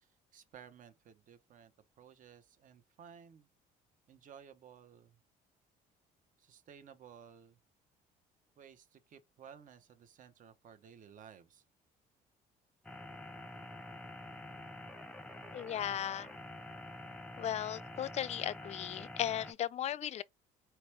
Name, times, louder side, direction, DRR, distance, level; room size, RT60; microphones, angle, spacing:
voice 1, 0.0-3.5 4.1-5.2 6.4-7.6 8.6-11.6, right 8 dB, 50° right, 0.9 m, -56 dB
sound 1, 12.8-19.5, left 1 dB, 5° left, 0.8 m, -47 dB
voice 2, 15.5-16.3 17.4-20.2, left 11 dB, 40° left, 0.4 m, -36 dB
4.4 x 2.9 x 3.2 m
cardioid pair, 110°, 17 cm